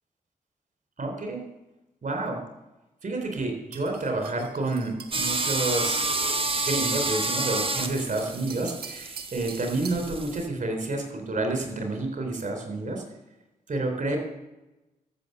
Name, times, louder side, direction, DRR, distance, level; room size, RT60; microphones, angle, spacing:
voice 1, 1.0-1.4 2.0-2.4 3.0-13.0 13.7-14.2, right 2 dB, 55° right, 4 dB, 3.8 m, -29 dB
sound 1, 3.7-10.1, right 7 dB, 75° right, 1.2 m, -46 dB
sound 2, 5.1-10.5, right 3 dB, 35° right, 1.5 m, -29 dB
13.5 x 7.1 x 6.8 m, 1.0 s
supercardioid pair, 45°, 16 cm